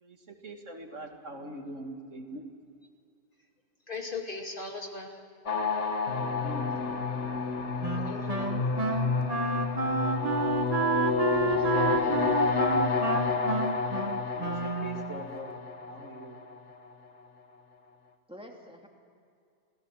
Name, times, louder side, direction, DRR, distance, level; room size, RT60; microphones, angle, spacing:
voice 1, 0.0-2.4 6.4-6.9 14.3-15.5 15.9-16.4, right 1 dB, 80° right, 3 dB, 2.6 m, -42 dB
voice 2, 3.9-5.2 7.9-8.7, left 3 dB, 45° left, 1 dB, 2.7 m, -38 dB
sound 1, 5.5-16.6, left 5 dB, 70° left, 1.7 m, -30 dB
Wind instrument woodwind instrument, 7.8-15.2, right 4 dB, 30° right, 1.3 m, -30 dB
voice 3, 11.4-12.7 18.3-18.9, right 1 dB, 5° right, 1 dB, 2.8 m, -47 dB
28.0 x 18.0 x 7.5 m, 2.5 s
omnidirectional pair, 1.3 m